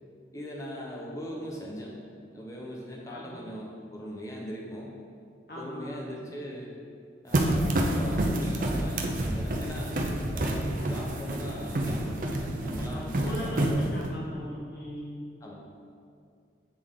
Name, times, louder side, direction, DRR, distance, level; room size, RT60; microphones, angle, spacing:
voice 1, 0.3-1.9 2.3-5.0 5.5-6.7 7.2-14.0 15.4-15.5, equal, 20° left, -3 dB, 0.7 m, -40 dB
voice 2, 5.5-6.3 12.9-15.2, left 1 dB, 55° left, -5 dB, 1.0 m, -40 dB
sound 1, 7.3-14.1, right 1 dB, 45° right, 0.5 m, -28 dB
8.3 x 3.5 x 3.6 m, 2.3 s
head